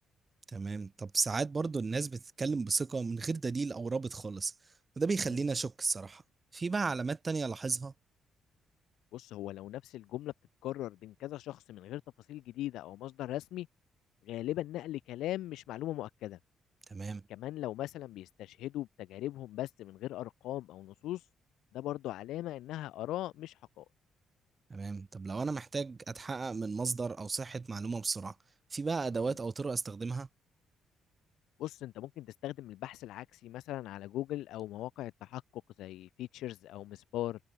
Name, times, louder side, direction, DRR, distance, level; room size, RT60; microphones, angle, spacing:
voice 1, 0.5-4.5 5.0-6.2 6.5-7.9 16.9-17.2 24.7-28.3 28.7-30.3, right 4 dB, 30° right, 4.1 m, -34 dB
voice 2, 9.1-10.3 10.6-12.0 12.3-13.7 14.2-16.4 17.3-21.2 21.7-23.8 29.3-29.4 31.6-35.4 35.8-37.4, left 14 dB, 85° left, 6.0 m, -39 dB
cardioid pair, 90°, 0 cm